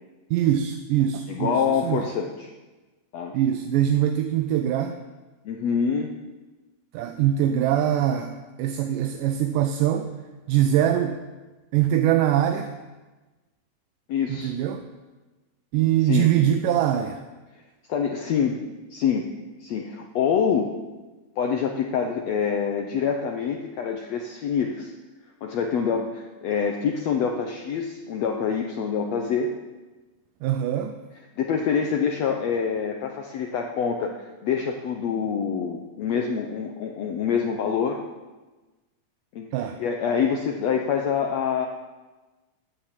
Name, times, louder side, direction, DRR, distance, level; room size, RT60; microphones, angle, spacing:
voice 1, 0.3-2.0 3.3-4.9 6.9-10.1 10.5-11.2 11.7-12.7 14.3-14.8 15.7-17.2 30.4-30.9 39.5-39.8, right 11 dB, 85° right, 6 dB, 2.3 m, -23 dB
voice 2, 1.3-2.5 3.1-3.3 5.4-6.1 14.1-14.5 16.0-16.3 17.9-18.6 18.9-19.3 19.6-20.8 21.4-24.9 25.4-29.6 31.4-38.0 39.3-39.5 39.8-41.7, left 7 dB, 70° left, 2 dB, 1.8 m, -26 dB
13.0 x 9.1 x 7.4 m, 1.2 s
omnidirectional pair, 3.7 m